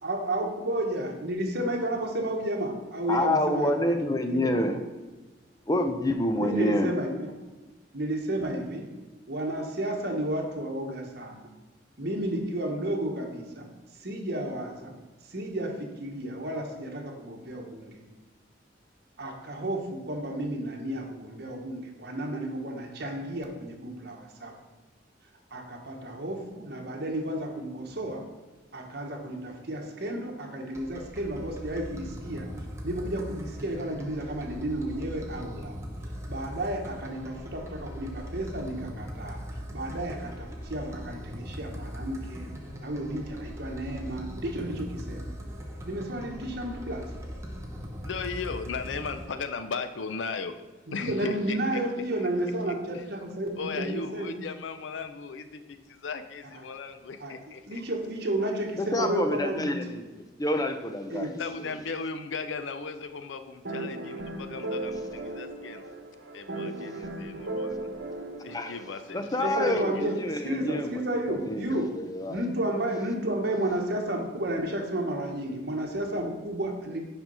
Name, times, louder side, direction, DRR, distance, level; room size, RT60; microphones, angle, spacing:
voice 1, 0.0-3.9 4.3-4.8 6.4-7.3 7.9-8.9 9.3-11.5 12.0-13.7 14.0-14.9 15.3-18.0 19.2-24.6 25.5-28.3 28.7-32.5 32.8-35.7 36.3-39.4 39.7-42.5 42.8-45.3 45.8-47.1 50.9-54.4 57.2-57.3 57.7-59.7 61.1-61.4 69.4-71.9 72.3-77.0, right 1 dB, 60° right, 1 dB, 1.2 m, -32 dB
voice 2, 3.1-4.8 5.7-6.9 58.8-61.4 68.5-68.7 69.1-71.6 71.9-72.4, left 1 dB, 20° left, 7 dB, 0.6 m, -28 dB
sound 1, 30.7-49.3, equal, 15° right, 0.9 m, -40 dB
voice 3, 48.1-50.6 50.9-52.3 52.9-53.1 53.5-57.8 61.4-65.8 66.3-67.9 68.4-70.0, left 5 dB, 85° left, 10 dB, 0.5 m, -37 dB
sound 2, 63.6-69.3, right 2 dB, 90° right, 1.0 m, -36 dB
6.0 x 5.2 x 5.4 m, 1.2 s
head